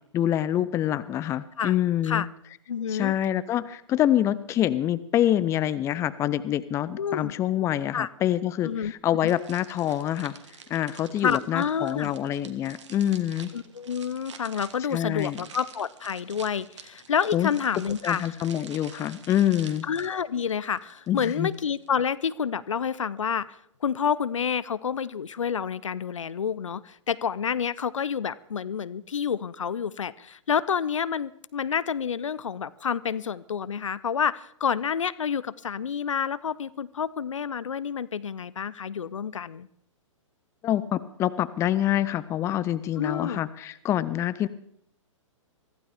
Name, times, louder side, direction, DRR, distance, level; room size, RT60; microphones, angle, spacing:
voice 1, 0.1-2.3 2.9-10.3 10.7-13.5 14.9-15.4 17.3-17.5 18.0-19.9 21.1-21.5 40.6-44.5, left 11 dB, 15° left, 16 dB, 0.5 m, -26 dB
voice 2, 2.7-3.1 7.0-7.3 7.9-8.1 8.6-8.9 9.2-9.3 11.2-12.1 13.5-18.4 19.9-39.7 43.0-43.4, left 7 dB, 70° left, 19 dB, 0.6 m, -29 dB
sound 1, 9.3-21.9, right 6 dB, 60° right, 1.6 m, -48 dB
24.0 x 15.0 x 3.5 m, 0.71 s
figure-of-eight pair, 115°, 17 cm